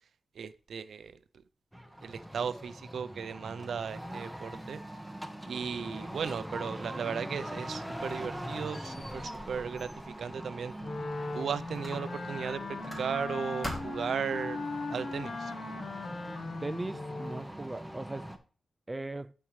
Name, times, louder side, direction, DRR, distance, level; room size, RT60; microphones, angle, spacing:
voice 1, 0.4-1.1 2.0-4.8 5.5-9.9 10.2-10.7 11.3-12.6 13.0-14.6 14.9-15.5, right 6 dB, 75° right, 0.5 m, -36 dB
sound 1, 1.7-18.4, equal, 5° right, 1.0 m, -42 dB
Squeak, 7.6-11.4 11.8-13.3 13.6-14.2, left 1 dB, 15° left, 2.5 m, -45 dB
Wind instrument woodwind instrument, 10.8-17.5, left 3 dB, 60° left, 1.0 m, -39 dB
voice 2, 16.6-18.3 18.9-19.3, right 2 dB, 20° right, 0.4 m, -38 dB
12.0 x 4.5 x 3.2 m
wide cardioid pair, 100°, 0 cm